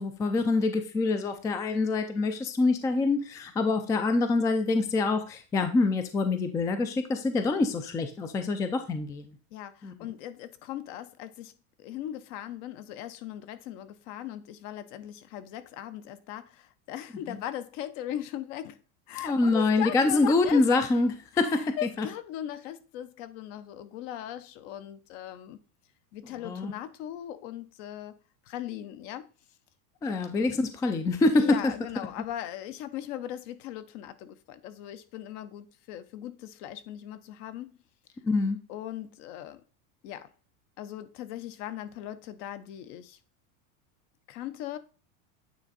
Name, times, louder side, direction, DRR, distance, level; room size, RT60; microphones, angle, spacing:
voice 1, 0.0-9.4 9.8-9.9 17.3-17.4 19.2-22.1 26.2-26.7 30.0-31.7 38.2-38.6, left 3 dB, 10° left, 0.3 m, -26 dB
voice 2, 9.5-11.5 11.8-18.8 19.1-20.6 21.4-25.6 26.1-28.2 28.5-29.3 30.0-30.3 31.3-37.7 38.7-39.6 40.0-40.3 40.8-43.2 44.3-44.8, left 11 dB, 60° left, 0.9 m, -39 dB
8.9 x 3.6 x 4.1 m
supercardioid pair, 135°, 41 cm